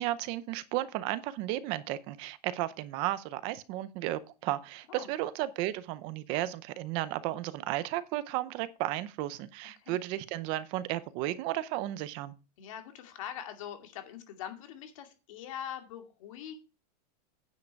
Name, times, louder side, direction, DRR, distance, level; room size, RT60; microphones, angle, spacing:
voice 1, 0.0-12.3, right 15 dB, 25° right, 0.6 m, -34 dB
voice 2, 12.6-16.5, left 10 dB, 50° left, 2.3 m, -43 dB
9.6 x 7.5 x 4.6 m
supercardioid pair, 180°, 21 cm